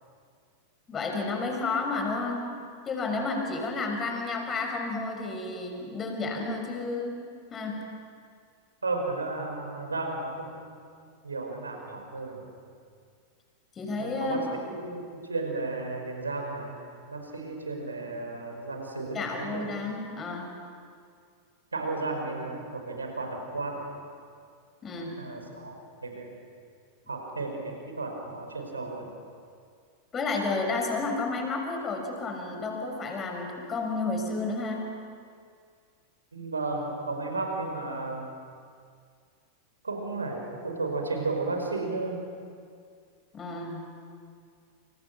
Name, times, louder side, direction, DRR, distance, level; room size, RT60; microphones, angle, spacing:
voice 1, 0.9-2.5 2.8-7.2 7.5-7.8 13.8-14.5 19.1-20.5 24.8-25.2 30.1-34.9 43.3-43.8, left 3 dB, 25° left, 2 dB, 6.2 m, -31 dB
voice 2, 8.8-10.7 11.2-12.5 14.0-16.8 17.1-19.8 21.7-23.8 25.2-26.3 27.1-29.1 36.3-38.3 39.8-42.2, right 3 dB, 75° right, 2 dB, 5.3 m, -33 dB
29.5 x 29.0 x 6.0 m, 2.2 s
figure-of-eight pair, 90°, 0 cm